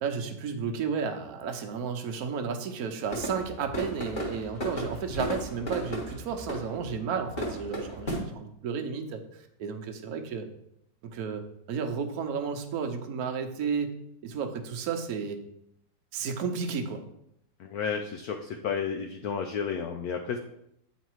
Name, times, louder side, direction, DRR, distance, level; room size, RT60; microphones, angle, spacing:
voice 1, 0.0-10.5 11.0-11.4 11.7-13.9 14.2-15.4 16.1-17.0, right 6 dB, 60° right, 5 dB, 1.1 m, -32 dB
sound 1, 3.0-8.2, equal, 25° left, 1.7 m, -35 dB
voice 2, 17.6-20.4, left 6 dB, 70° left, 4 dB, 0.9 m, -32 dB
9.3 x 4.0 x 4.5 m, 0.76 s
omnidirectional pair, 2.1 m